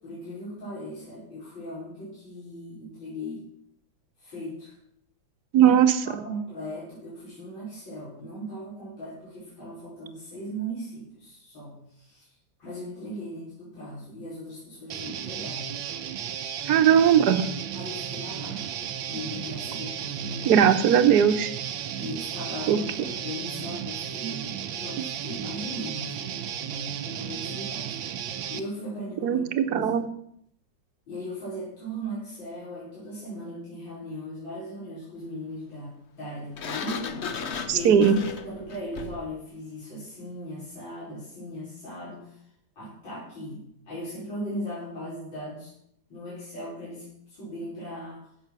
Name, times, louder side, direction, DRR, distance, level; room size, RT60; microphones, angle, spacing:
voice 1, 0.0-3.4 4.2-4.7 5.6-12.3 12.6-15.8 17.7-18.7 19.1-20.6 21.9-30.0 31.1-37.1 37.7-38.1 38.4-42.4 42.8-45.7 46.1-48.2, equal, 75° left, -10 dB, 5.9 m, -38 dB
voice 2, 5.5-5.9 16.7-17.5 20.5-21.5 22.7-22.8 29.2-30.1 37.7-38.2, right 9 dB, 60° right, 9 dB, 1.3 m, -19 dB
Guitar, 14.9-28.6, right 9 dB, 85° right, 1.6 m, -34 dB
Sliding door, 36.6-39.3, left 5 dB, 50° left, 0.8 m, -35 dB
15.5 x 6.5 x 6.1 m, 0.72 s
omnidirectional pair, 2.1 m